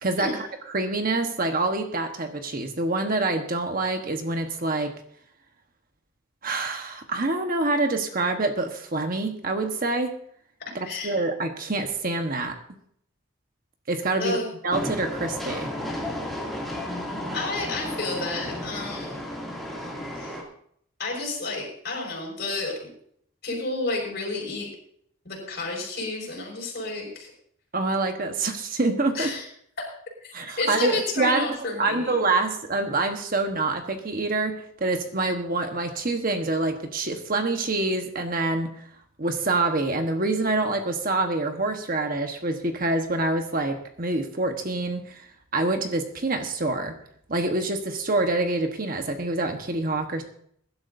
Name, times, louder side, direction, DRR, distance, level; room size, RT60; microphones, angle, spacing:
voice 1, 0.0-4.9 6.4-10.1 10.7-12.6 13.9-14.4 14.6-15.7 27.7-29.3 30.3-31.5 31.8-38.8 39.2-45.2 45.5-46.9 47.3-50.2, right 2 dB, 40° right, 5 dB, 1.2 m, -26 dB
voice 2, 10.8-11.2 14.2-14.5 17.3-19.2 20.1-20.4 21.0-22.9 23.4-24.7 25.2-27.3 29.1-29.5 30.2-32.1, left 3 dB, 50° left, -1 dB, 5.5 m, -31 dB
Train, 14.7-20.4, left 1 dB, ahead, 2.5 m, -33 dB
22.0 x 11.5 x 2.7 m, 0.67 s
head